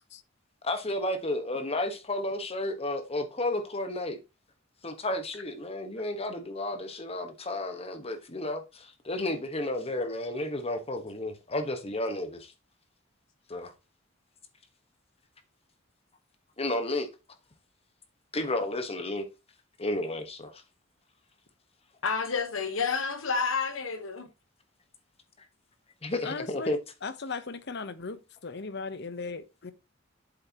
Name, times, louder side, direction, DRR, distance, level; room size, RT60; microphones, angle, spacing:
voice 1, 0.6-4.2 4.8-8.6 9.0-12.4 13.5-13.7 16.6-17.1 18.3-19.2 19.8-20.5 26.0-26.8, left 1 dB, 30° left, 1.3 m, -32 dB
voice 2, 22.0-24.3, left 5 dB, 85° left, 1.3 m, -29 dB
voice 3, 26.2-29.7, left 4 dB, 60° left, 0.9 m, -37 dB
7.9 x 6.6 x 3.0 m
head